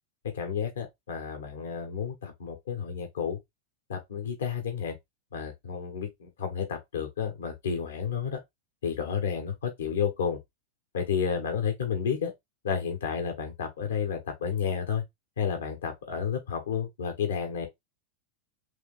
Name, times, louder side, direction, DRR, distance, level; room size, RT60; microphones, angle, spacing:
voice 1, 0.3-3.4 3.9-5.0 5.3-8.4 8.8-10.4 10.9-12.3 12.6-15.0 15.4-17.7, left 7 dB, 65° left, 1.3 m, -31 dB
3.6 x 3.4 x 3.8 m
figure-of-eight pair, 90°, 0 cm